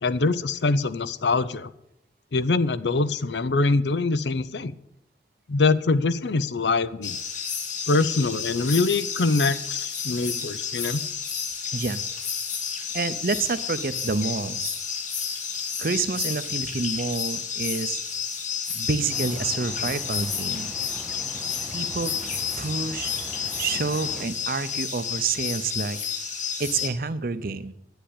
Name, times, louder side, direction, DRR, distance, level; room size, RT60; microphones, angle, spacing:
voice 1, 0.0-1.7 2.3-4.7 5.5-7.2 7.9-11.0, left 3 dB, 80° left, 16 dB, 0.6 m, -24 dB
sound 1, 7.0-26.9, left 6 dB, 45° left, 1.6 m, -31 dB
voice 2, 11.7-12.0 12.9-14.7 15.8-18.0 18.7-20.7 21.7-22.2 22.6-23.1 23.6-26.0 26.6-27.7, right 4 dB, 55° right, 13 dB, 0.6 m, -28 dB
sound 2, 19.1-24.3, equal, ahead, 0.5 m, -42 dB
10.5 x 9.0 x 8.5 m, 0.82 s
head